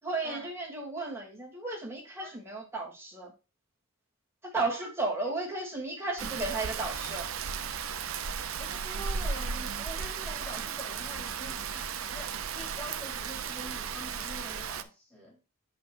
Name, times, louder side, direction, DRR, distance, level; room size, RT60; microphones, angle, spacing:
voice 1, 0.0-3.3 4.4-7.3, right 3 dB, 10° right, 2.9 m, -34 dB
Rain, 6.2-14.8, right 6 dB, 70° right, 0.6 m, -35 dB
voice 2, 8.6-15.4, equal, 5° left, 4.0 m, -45 dB
8.1 x 6.6 x 2.6 m
head